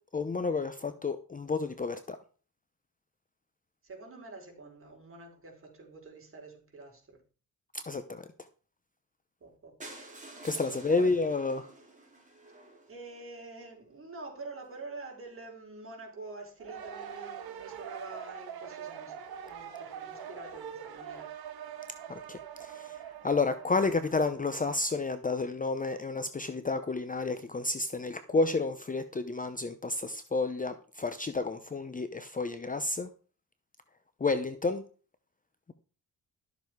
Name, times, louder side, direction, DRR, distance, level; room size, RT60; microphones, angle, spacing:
voice 1, 0.1-2.2 7.7-8.2 10.4-11.7 22.1-22.4 22.7-22.9 23.2-33.1 34.2-34.8, left 3 dB, 20° left, 0.8 m, -30 dB
voice 2, 3.8-7.2 9.4-9.7 10.7-11.1 12.9-21.3, right 3 dB, 35° right, 4.6 m, -46 dB
sound 1, 9.8-13.7 14.3-14.4 14.7-14.8 15.1-15.2 15.3-15.4, right 2 dB, 20° right, 4.4 m, -50 dB
sound 2, 16.6-24.3, right 8 dB, 75° right, 2.0 m, -43 dB
12.5 x 7.2 x 4.7 m
cardioid pair, 110°, 38 cm